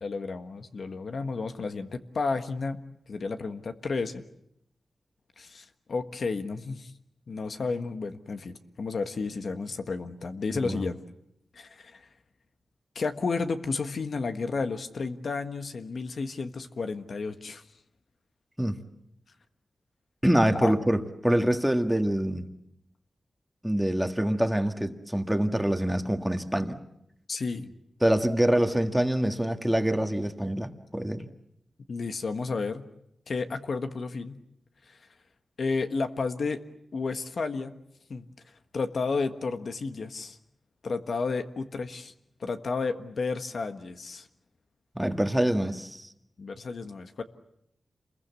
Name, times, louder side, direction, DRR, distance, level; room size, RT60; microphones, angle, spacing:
voice 1, 0.0-2.8 3.1-4.2 5.4-6.9 7.3-11.0 11.5-12.1 12.9-17.6 20.6-20.7 27.3-27.7 31.9-32.9 33.3-34.4 34.9-35.0 35.6-36.6 36.9-37.8 38.1-38.3 38.7-40.4 40.8-42.1 42.4-44.3 46.4-47.2, left 4 dB, 65° left, 8 dB, 1.5 m, -32 dB
voice 2, 10.5-10.8 18.6-18.8 20.2-22.5 23.6-26.8 28.0-31.3 45.0-46.1, right 1 dB, 5° right, 6 dB, 1.8 m, -25 dB
28.5 x 21.5 x 8.3 m, 0.77 s
wide cardioid pair, 105°, 0 cm